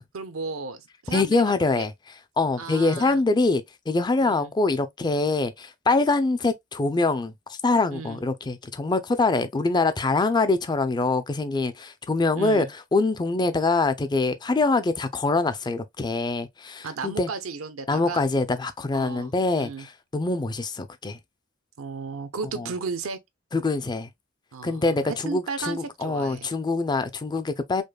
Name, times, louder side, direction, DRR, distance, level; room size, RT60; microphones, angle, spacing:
voice 1, 0.1-1.5 2.6-3.2 4.2-4.5 7.9-8.2 12.3-12.7 16.8-18.2 18.9-19.9 21.8-23.2 24.5-26.5, right 4 dB, 85° right, 0.7 m, -34 dB
voice 2, 1.1-1.9 2.4-7.3 7.6-12.7 12.9-17.3 17.9-21.2 22.6-22.7 23.5-24.1 24.6-27.8, left 3 dB, 20° left, 0.4 m, -24 dB
5.1 x 2.1 x 2.3 m
head